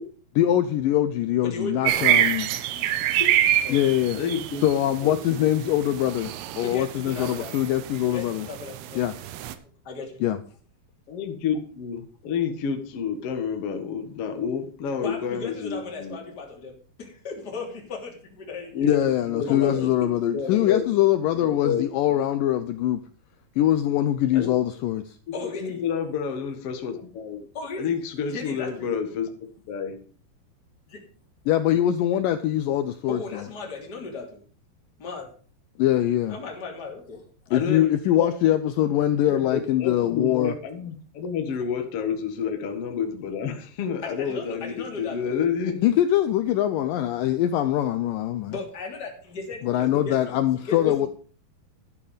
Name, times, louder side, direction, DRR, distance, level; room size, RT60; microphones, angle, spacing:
voice 1, 0.4-2.5 3.7-4.2 4.6-8.5 9.0-9.1 10.2-10.4 18.8-23.0 23.6-25.2 31.5-33.4 35.8-36.4 37.5-40.5 45.8-48.5 49.6-51.1, left 12 dB, 80° left, 2.0 m, -23 dB
voice 2, 1.4-2.3 2.7-2.9 3.6-3.8 6.6-7.5 8.0-9.0 9.8-10.2 15.0-18.9 19.5-20.1 25.3-25.8 27.5-28.0 28.3-28.9 30.9-31.0 33.1-34.4 35.0-35.3 36.3-37.3 44.0-45.4 48.5-51.1, left 3 dB, 25° left, 3.4 m, -36 dB
sound 1, 1.8-9.5, right 12 dB, 80° right, 2.8 m, -26 dB
voice 3, 4.1-4.6 5.0-5.5 11.1-16.2 18.7-19.9 20.3-20.8 21.3-21.8 24.3-24.5 25.4-27.4 27.8-29.3 29.7-30.0 37.5-37.8 38.2-38.3 39.3-45.8 49.8-50.0 50.8-51.0, left 6 dB, 55° left, 1.8 m, -29 dB
12.0 x 9.9 x 5.1 m
omnidirectional pair, 4.6 m